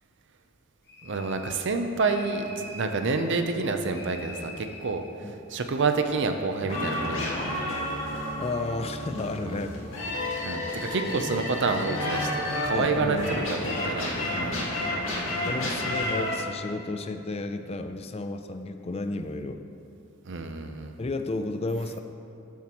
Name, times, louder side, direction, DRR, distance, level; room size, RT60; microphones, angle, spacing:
sound 1, 0.9-1.7 2.0-2.9 3.9-5.0, left 2 dB, 50° left, 1.1 m, -44 dB
voice 1, 1.0-7.3 9.5-9.6 10.4-13.6 13.8-14.1 14.4-14.6 20.2-20.9, right 4 dB, 60° right, 6 dB, 0.6 m, -28 dB
sound 2, 6.7-16.3, left 1 dB, 65° left, 1.9 m, -31 dB
voice 2, 8.4-10.2 11.0-11.2 12.7-13.4 14.3-14.6 15.4-19.6 21.0-22.0, left 2 dB, 30° left, 8 dB, 0.4 m, -33 dB
13.5 x 7.2 x 3.0 m, 2.7 s
head